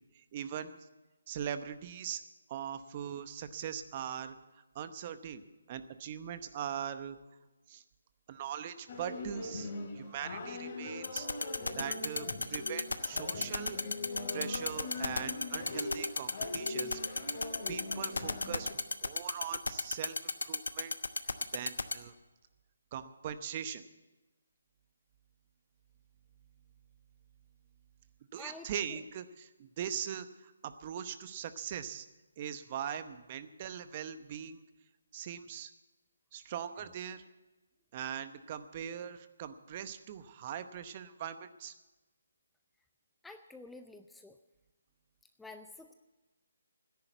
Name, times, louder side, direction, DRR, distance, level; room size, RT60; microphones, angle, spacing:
voice 1, 0.1-0.8 1.3-2.2 2.5-4.4 4.7-5.4 5.7-7.2 7.7-7.8 8.3-11.3 11.7-13.8 14.3-17.3 17.7-18.7 19.0-20.9 21.5-22.1 22.9-23.8 28.3-32.1 32.4-34.7 35.1-35.7 36.3-37.2 37.9-41.7, right 9 dB, 30° right, 11 dB, 0.8 m, -41 dB
sound 1, 8.9-18.7, left 2 dB, 35° left, 3.4 m, -41 dB
sound 2, 11.0-21.9, left 3 dB, 85° left, 1.0 m, -32 dB
voice 2, 28.4-28.7 43.2-44.4 45.4-45.9, left 3 dB, 5° left, 7 dB, 0.5 m, -49 dB
13.5 x 10.5 x 8.0 m, 1.1 s
figure-of-eight pair, 155°, 0 cm